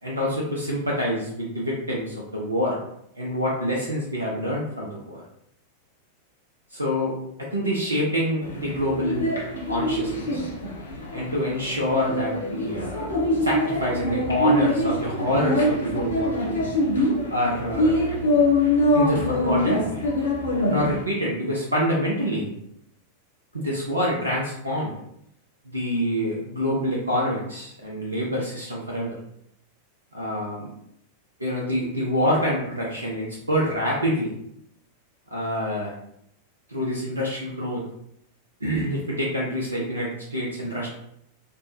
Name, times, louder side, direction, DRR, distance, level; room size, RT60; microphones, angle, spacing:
voice 1, 0.0-2.8 3.2-5.2 6.7-9.3 9.7-10.4 11.1-13.1 13.4-16.6 17.3-18.0 18.9-19.9 20.7-22.5 23.5-24.9 25.7-29.2 30.1-30.7 31.4-34.3 35.3-35.9 36.7-37.8 38.6-40.9, equal, 80° right, -3 dB, 0.5 m, -26 dB
sound 1, 8.4-21.0, left 1 dB, 70° left, 0.7 m, -24 dB
3.4 x 2.2 x 2.6 m, 0.75 s
figure-of-eight pair, 90°, 0 cm